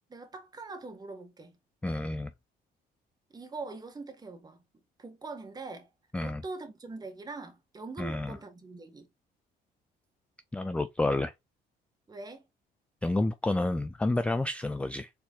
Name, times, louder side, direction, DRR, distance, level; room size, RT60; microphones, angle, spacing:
voice 1, 0.1-1.6 3.3-4.6 5.0-5.9 6.2-9.1 12.1-12.5, right 3 dB, 25° right, 1.5 m, -43 dB
voice 2, 1.8-2.3 6.1-6.4 8.0-8.4 10.5-11.3 13.0-15.1, left 2 dB, 5° left, 0.4 m, -29 dB
4.5 x 4.1 x 2.4 m
cardioid pair, 110°, 17 cm